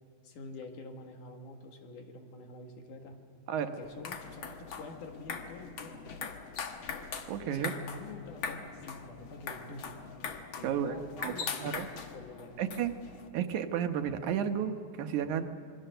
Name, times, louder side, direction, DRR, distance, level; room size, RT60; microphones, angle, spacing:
voice 1, 0.2-3.2 3.6-6.0 7.5-10.0 10.6-11.8 12.1-12.6, left 2 dB, 85° left, 3 dB, 3.4 m, -46 dB
sound 1, 3.8-13.3, left 6 dB, 50° left, 1.7 m, -41 dB
voice 2, 7.3-7.7 10.6-10.9 11.2-11.3 11.6-11.9 12.6-12.9 13.3-15.5, right 9 dB, 75° right, 7 dB, 2.5 m, -32 dB
26.5 x 22.0 x 6.8 m, 2.3 s
omnidirectional pair, 3.5 m